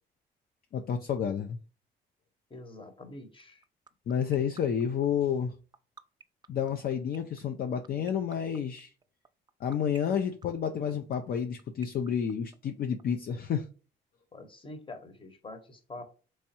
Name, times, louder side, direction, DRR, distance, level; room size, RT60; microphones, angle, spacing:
voice 1, 0.7-1.6 4.1-5.5 6.5-8.9 9.6-13.7, left 8 dB, 55° left, 5 dB, 0.4 m, -30 dB
voice 2, 2.5-3.6 14.3-16.0, left 2 dB, 30° left, 7 dB, 1.0 m, -45 dB
sound 1, 3.4-13.0, right 5 dB, 25° right, 0.4 m, -50 dB
3.4 x 3.1 x 2.8 m, 0.36 s
supercardioid pair, 70°, 19 cm